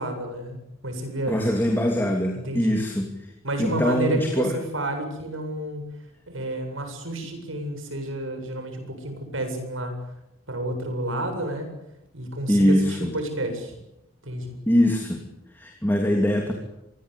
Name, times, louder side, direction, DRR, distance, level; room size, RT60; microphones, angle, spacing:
voice 1, 0.0-1.4 2.3-2.8 3.4-5.8 6.3-9.9 10.5-11.7 12.1-13.8 14.2-14.6, right 1 dB, 80° right, 6 dB, 8.0 m, -30 dB
voice 2, 1.3-3.3 3.6-4.6 12.5-13.1 14.7-15.2 15.5-16.5, equal, 10° left, 2 dB, 2.9 m, -22 dB
26.5 x 21.5 x 8.5 m, 0.88 s
head